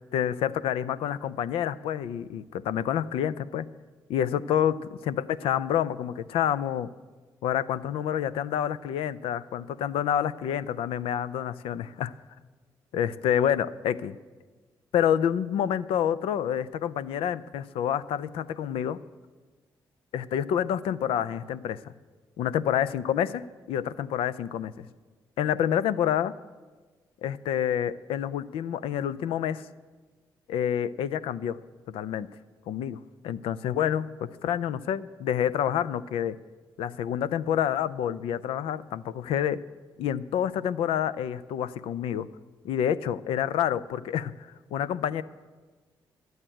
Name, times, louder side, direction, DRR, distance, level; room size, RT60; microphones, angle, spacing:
voice 1, 0.1-3.7 4.1-6.9 7.4-12.1 12.9-14.2 14.9-19.0 20.1-21.9 22.4-24.9 25.4-26.3 27.2-29.6 30.5-31.6 31.9-32.3 32.7-36.4 36.8-39.6 40.0-42.3 42.6-45.2, left 9 dB, 80° left, 15 dB, 0.5 m, -28 dB
12.0 x 7.9 x 9.8 m, 1.3 s
supercardioid pair, 50°, 9 cm